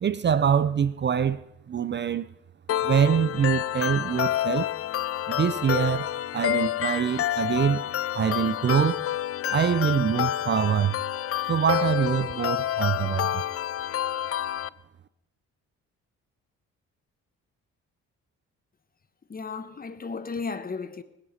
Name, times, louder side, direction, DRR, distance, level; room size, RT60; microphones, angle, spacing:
voice 1, 0.0-1.4 1.7-2.3 2.8-4.7 5.3-6.1 6.3-7.8 8.1-9.0 9.5-11.0 11.5-13.4, right 8 dB, 35° right, 0.6 m, -24 dB
sound 1, 2.7-14.7, left 12 dB, 50° left, 0.5 m, -28 dB
voice 2, 19.3-21.0, left 4 dB, 30° left, 1.3 m, -34 dB
20.0 x 9.6 x 5.7 m
cardioid pair, 90°, 30 cm